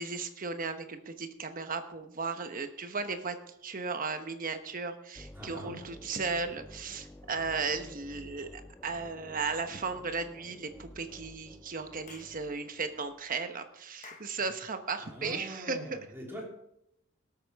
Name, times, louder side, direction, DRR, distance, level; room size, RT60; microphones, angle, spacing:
voice 1, 0.0-3.4 3.6-16.0, right 4 dB, 45° right, 8 dB, 1.1 m, -36 dB
sound 1, 5.1-13.2, left 1 dB, 10° left, 0.6 m, -52 dB
voice 2, 5.4-5.8 15.0-16.5, equal, 10° right, -3 dB, 3.4 m, -43 dB
Clapping / Chirp tweet, 12.1-12.4 14.0-14.4, left 5 dB, 35° left, 1.1 m, -50 dB
18.0 x 8.8 x 3.6 m, 0.78 s
head